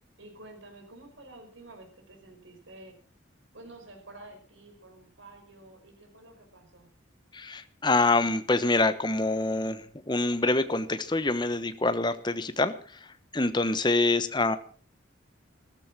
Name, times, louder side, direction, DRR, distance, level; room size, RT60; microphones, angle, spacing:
voice 1, 0.2-2.9 3.5-6.9 14.0-14.3, right 2 dB, 75° right, 4 dB, 5.4 m, -50 dB
voice 2, 7.3-13.1 13.3-14.6, left 2 dB, 20° left, 12 dB, 1.0 m, -26 dB
14.0 x 14.0 x 6.1 m, 0.43 s
head